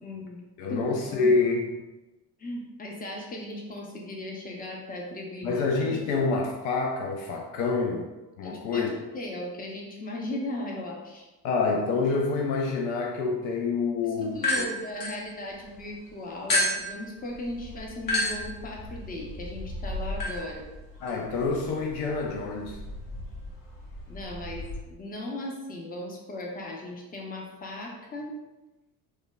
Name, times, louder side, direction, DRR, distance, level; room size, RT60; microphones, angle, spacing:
voice 1, 0.0-0.4 0.7-1.3 2.4-6.0 8.4-11.3 14.0-20.7 24.1-28.4, left 1 dB, 20° left, -1 dB, 0.6 m, -37 dB
voice 2, 0.6-1.7 5.4-8.1 8.4-8.9 11.4-14.6 21.0-22.8, left 4 dB, 65° left, 2 dB, 0.5 m, -27 dB
sound 1, 14.3-15.8 16.5-24.8, left 1 dB, 45° left, 1.0 m, -33 dB
3.1 x 2.1 x 2.3 m, 1.1 s
hypercardioid pair, 60°, 46 cm